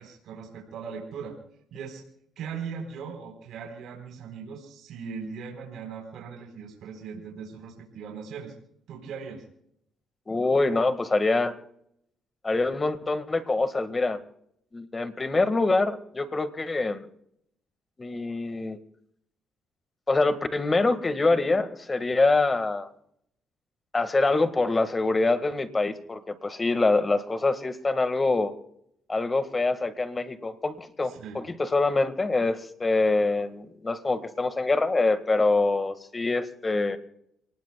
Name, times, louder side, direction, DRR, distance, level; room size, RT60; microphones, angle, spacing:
voice 1, 0.0-1.4 1.7-2.0 2.4-8.5 8.9-9.4 31.0-31.4, right 6 dB, 80° right, 1 dB, 4.1 m, -39 dB
voice 2, 10.3-11.6 12.4-14.2 14.7-17.1 18.0-18.8 20.1-22.9 23.9-28.5 29.1-37.0, left 3 dB, 25° left, 10 dB, 1.7 m, -25 dB
30.0 x 19.5 x 2.3 m, 0.74 s
cardioid pair, 90°, 0 cm